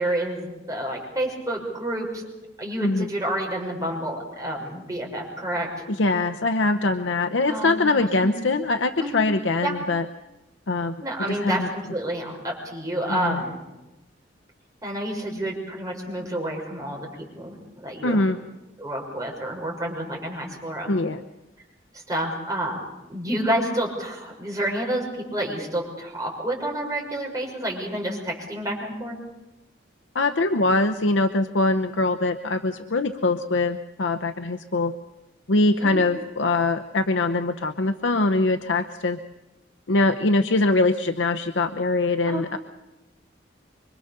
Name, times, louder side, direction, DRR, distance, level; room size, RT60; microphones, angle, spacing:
voice 1, 0.0-2.2 2.6-5.9 7.4-7.9 8.2-8.3 9.0-9.2 9.6-9.8 11.0-13.6 14.8-17.1 17.4-18.2 18.8-20.9 21.9-22.8 23.1-29.2 35.8-36.0 42.3-42.4, right 1 dB, 20° right, -1 dB, 6.3 m, -29 dB
voice 2, 5.9-10.0 10.7-11.0 11.3-11.7 13.1-13.4 18.0-18.4 20.9-21.2 30.1-34.9 35.5-39.2 39.9-42.6, left 2 dB, 80° left, 6 dB, 0.9 m, -23 dB
25.5 x 24.5 x 6.8 m, 1.0 s
head